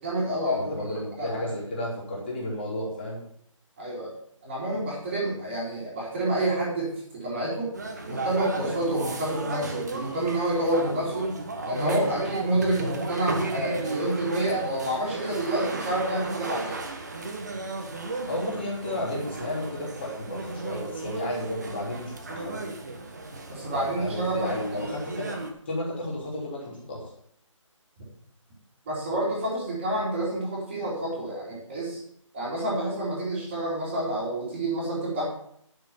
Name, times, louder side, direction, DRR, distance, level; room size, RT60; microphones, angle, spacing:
voice 1, 0.0-0.8 1.2-1.3 3.8-4.1 4.4-7.7 8.0-11.4 11.6-16.8 23.5-24.8 28.9-32.0 32.3-35.2, right 1 dB, 15° right, -12 dB, 3.0 m, -28 dB
voice 2, 0.5-3.2 18.3-22.7 23.7-25.4 25.7-27.1, left 1 dB, 20° left, -5 dB, 3.2 m, -33 dB
sound 1, 7.7-25.5, right 2 dB, 30° right, 1.3 m, -34 dB
11.0 x 6.3 x 7.1 m, 0.67 s
figure-of-eight pair, 175°, 17 cm